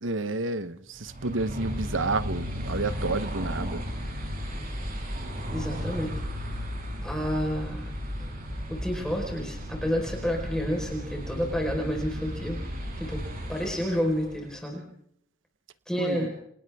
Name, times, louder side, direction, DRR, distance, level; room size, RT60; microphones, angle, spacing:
voice 1, 0.0-3.8 16.0-16.3, right 3 dB, 75° right, 13 dB, 1.1 m, -30 dB
sound 1, 1.0-14.5, equal, 45° right, 7.0 m, -35 dB
voice 2, 5.5-6.1 7.0-7.9 8.2-8.3 8.7-12.6 13.0-13.2 13.5-14.8 15.9-16.3, equal, 5° left, 0 dB, 4.7 m, -30 dB
30.0 x 27.5 x 3.6 m, 0.69 s
head